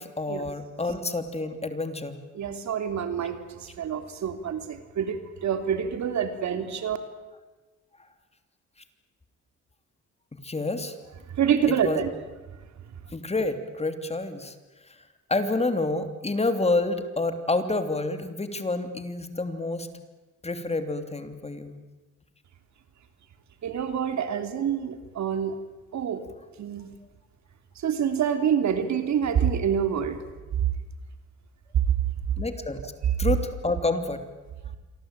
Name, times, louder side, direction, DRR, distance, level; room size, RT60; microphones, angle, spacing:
voice 1, 0.0-2.2 10.3-11.0 11.7-12.0 13.1-14.5 15.3-19.9 20.4-21.7 32.4-32.9 33.2-34.2, left 2 dB, 20° left, 9 dB, 3.0 m, -28 dB
voice 2, 2.3-7.0 11.4-12.1 23.6-25.5 25.9-26.2 26.6-26.9 27.8-30.2, right 8 dB, 65° right, 8 dB, 3.3 m, -27 dB
28.0 x 23.5 x 9.0 m, 1.2 s
cardioid pair, 90°, 30 cm